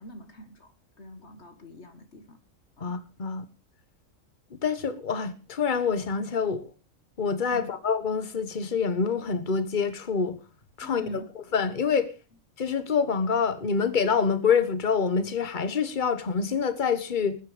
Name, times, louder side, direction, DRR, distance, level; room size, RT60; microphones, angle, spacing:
voice 1, 0.0-2.4 2.8-3.0 7.5-7.7 10.8-11.3, equal, 55° left, 1.8 m, -44 dB
voice 2, 2.8-3.5 4.5-6.7 7.2-10.4 10.8-11.2 11.5-12.1 12.6-17.4, left 6 dB, 35° left, 1.4 m, -26 dB
20.0 x 9.8 x 5.0 m
omnidirectional pair, 1.4 m